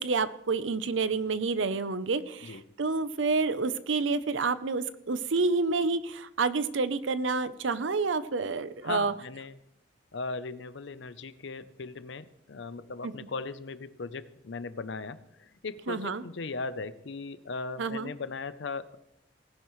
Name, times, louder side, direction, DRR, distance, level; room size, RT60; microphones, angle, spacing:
voice 1, 0.0-9.1 13.0-13.1 15.9-16.2 17.8-18.1, right 4 dB, 90° right, 14 dB, 0.7 m, -29 dB
voice 2, 8.8-9.5 10.1-19.0, left 4 dB, 75° left, 14 dB, 0.7 m, -38 dB
18.5 x 10.5 x 3.2 m, 0.80 s
head